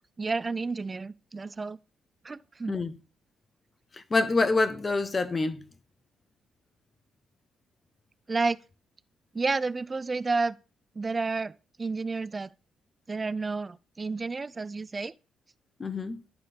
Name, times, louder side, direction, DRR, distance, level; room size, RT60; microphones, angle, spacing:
voice 1, 0.2-1.8 2.2-2.7 8.3-8.6 9.3-10.6 11.0-11.5 11.8-12.5 13.1-15.1, right 3 dB, 25° right, 0.3 m, -30 dB
voice 2, 3.9-5.6 15.8-16.2, left 3 dB, 30° left, 0.8 m, -26 dB
12.0 x 4.2 x 3.3 m
cardioid pair, 90°, 0 cm